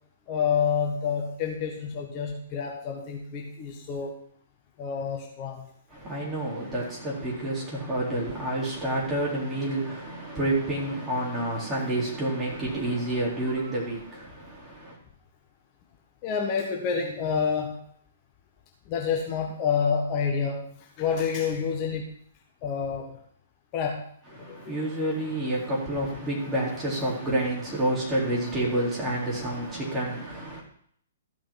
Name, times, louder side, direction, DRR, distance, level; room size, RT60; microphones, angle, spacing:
voice 1, 0.3-4.1 4.8-5.7 16.2-17.8 18.9-22.1 22.6-23.2 23.7-24.1 24.4-24.8, left 6 dB, 30° left, 1.5 m, -28 dB
voice 2, 5.9-15.0 24.4-30.6, right 1 dB, 15° right, 3.9 m, -29 dB
14.0 x 6.0 x 5.8 m
figure-of-eight pair, 120°, 0 cm